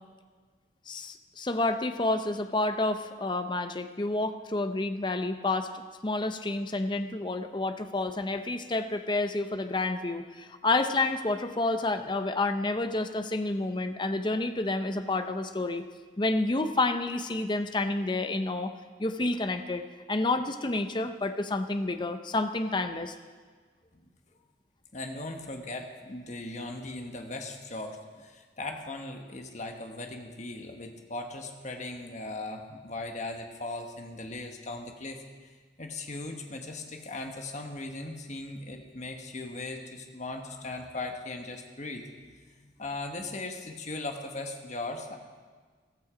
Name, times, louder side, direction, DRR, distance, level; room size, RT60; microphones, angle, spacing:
voice 1, 0.9-15.8 16.2-18.7 19.0-19.8 20.1-23.1, left 2 dB, 25° left, 8 dB, 0.6 m, -29 dB
voice 2, 24.9-35.2 35.8-42.1 42.6-45.2, left 2 dB, 40° left, 4 dB, 1.3 m, -38 dB
14.5 x 13.5 x 5.0 m, 1.5 s
head